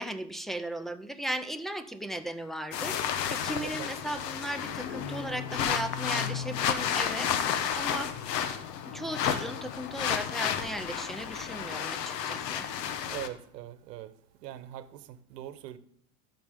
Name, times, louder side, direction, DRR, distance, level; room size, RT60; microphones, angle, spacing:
voice 1, 0.0-3.0 3.3-7.3 7.7-8.1 8.9-12.7, right 1 dB, ahead, 0.5 m, -36 dB
sound 1, 2.7-13.3, left 8 dB, 80° left, 1.1 m, -32 dB
voice 2, 3.4-3.9 13.1-14.1 14.4-15.8, right 12 dB, 80° right, 1.0 m, -42 dB
13.5 x 5.9 x 3.6 m
hypercardioid pair, 105°, 48 cm